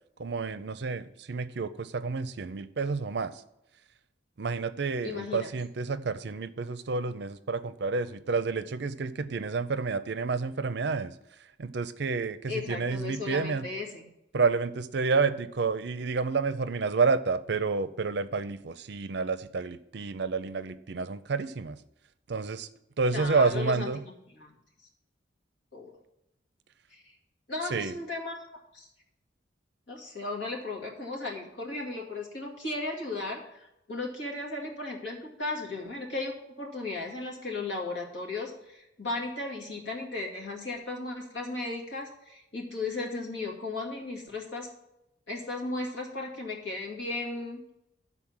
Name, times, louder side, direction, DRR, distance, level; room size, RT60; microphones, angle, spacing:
voice 1, 0.2-3.3 4.4-11.1 11.6-13.6 14.3-21.8 22.3-22.7 23.0-24.0 27.7-27.9, right 4 dB, 65° right, 13 dB, 0.5 m, -29 dB
voice 2, 5.0-5.5 12.5-14.1 23.1-23.9 24.4-24.5 25.7-25.9 26.9-27.0 27.5-28.9 29.9-44.7 45.3-47.6, left 3 dB, 80° left, -1 dB, 2.1 m, -35 dB
11.5 x 4.1 x 7.3 m, 0.86 s
head